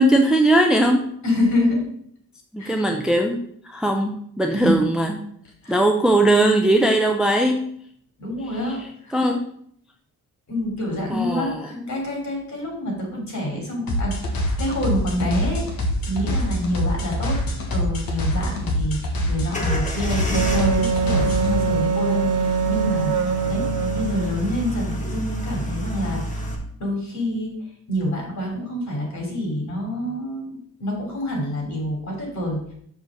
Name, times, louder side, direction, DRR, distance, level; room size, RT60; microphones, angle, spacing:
voice 1, 0.0-1.1 2.5-3.4 3.6-5.2 5.7-7.7 9.1-9.4 11.1-11.9, right 1 dB, ahead, 3 dB, 0.5 m, -19 dB
voice 2, 1.2-1.8 2.6-2.8 4.5-4.8 5.6-5.8 8.2-9.2 10.5-17.4 17.7-26.5 26.8-27.6 27.9-32.7, left 1 dB, 50° left, 0 dB, 3.2 m, -27 dB
sound 1, 13.9-21.5, equal, 70° left, 1.7 m, -25 dB
sound 2, 19.5-26.5, right 1 dB, 20° left, 1.4 m, -29 dB
Wind instrument woodwind instrument, 20.3-24.4, right 5 dB, 55° right, 0.7 m, -23 dB
6.5 x 4.9 x 6.4 m, 0.66 s
wide cardioid pair, 170°, 37 cm